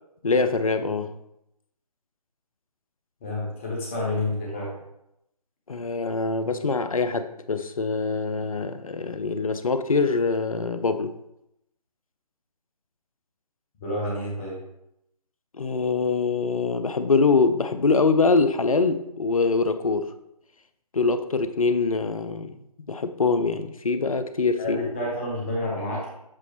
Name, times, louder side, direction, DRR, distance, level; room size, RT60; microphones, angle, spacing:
voice 1, 0.2-1.1 5.7-11.1 15.5-20.1 20.9-22.6 22.9-24.8, left 4 dB, 60° left, 10 dB, 0.6 m, -24 dB
voice 2, 3.2-4.7 13.8-14.6 24.6-26.1, left 1 dB, 20° left, -3 dB, 1.3 m, -29 dB
7.5 x 4.0 x 3.3 m, 0.83 s
figure-of-eight pair, 150°, 20 cm